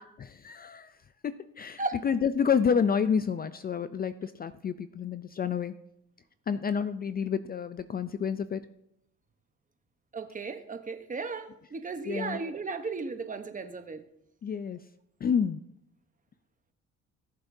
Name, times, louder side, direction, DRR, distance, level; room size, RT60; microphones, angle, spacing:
voice 1, 0.2-0.9 1.2-5.7 6.5-8.6 12.0-12.4 14.4-14.8 15.2-15.6, left 7 dB, 30° left, 12 dB, 0.4 m, -29 dB
voice 2, 10.1-14.0, right 4 dB, 25° right, 7 dB, 1.0 m, -35 dB
18.5 x 7.9 x 2.7 m, 0.77 s
cardioid pair, 105°, 29 cm